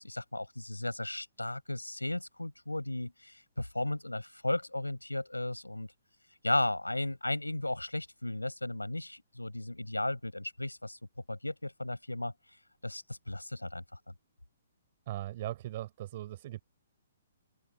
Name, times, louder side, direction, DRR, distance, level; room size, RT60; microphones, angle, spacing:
voice 1, 0.0-5.9 6.4-11.0 11.3-12.3 12.8-13.8, left 1 dB, 90° left, 7.5 m, -35 dB
voice 2, 15.1-16.6, right 14 dB, 45° right, 4.6 m, -39 dB
open air
figure-of-eight pair, 125°, 0 cm